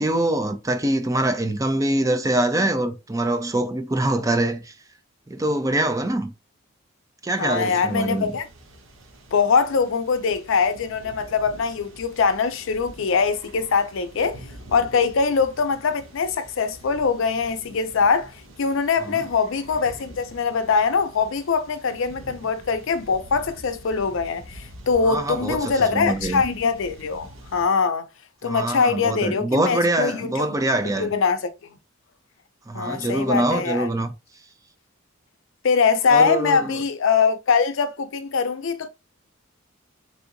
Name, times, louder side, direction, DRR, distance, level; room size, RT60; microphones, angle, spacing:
voice 1, 0.0-4.7 5.3-6.3 7.2-8.3 19.0-19.3 25.0-26.4 28.4-31.1 32.7-34.1 36.1-36.8, right 1 dB, 15° right, 0.4 m, -24 dB
voice 2, 7.4-8.5 9.3-14.4 14.7-28.0 28.4-30.4 31.0-31.5 32.7-33.9 35.6-38.9, left 5 dB, 70° left, 0.5 m, -22 dB
sound 1, 7.9-27.7, right 1 dB, 75° right, 0.8 m, -45 dB
3.4 x 2.8 x 2.5 m
head